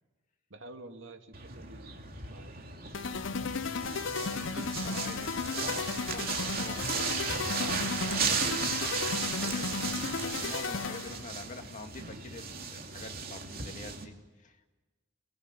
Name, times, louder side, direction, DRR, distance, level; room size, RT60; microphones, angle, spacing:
voice 1, 0.5-2.5, right 2 dB, 80° right, 5 dB, 2.4 m, -49 dB
sound 1, 1.3-14.0, right 5 dB, 50° right, 2.8 m, -35 dB
sound 2, 2.9-11.3, left 5 dB, 75° left, 0.8 m, -34 dB
voice 2, 4.7-14.7, left 2 dB, 40° left, 4 dB, 2.3 m, -47 dB
23.5 x 21.0 x 9.8 m, 1.2 s
head